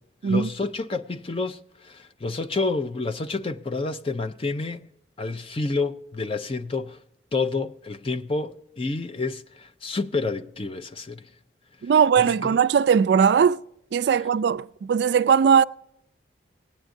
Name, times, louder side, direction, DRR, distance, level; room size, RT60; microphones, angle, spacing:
voice 1, 0.2-4.9 5.2-7.0 7.3-11.3 12.2-12.6, left 3 dB, 30° left, 0.5 m, -29 dB
voice 2, 11.8-13.6 13.9-15.6, right 7 dB, 60° right, 0.3 m, -19 dB
18.5 x 9.2 x 2.6 m
head